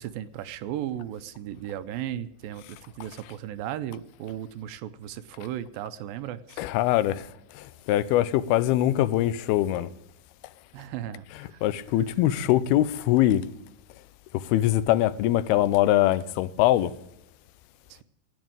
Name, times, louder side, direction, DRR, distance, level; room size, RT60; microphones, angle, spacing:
voice 1, 0.0-6.6 10.7-11.6 17.9-18.0, right 11 dB, 80° right, 2.3 m, -36 dB
voice 2, 6.6-7.3 7.6-9.9 11.3-13.4 14.3-16.9, left 14 dB, 90° left, 2.6 m, -23 dB
15.0 x 9.2 x 8.8 m
omnidirectional pair, 4.3 m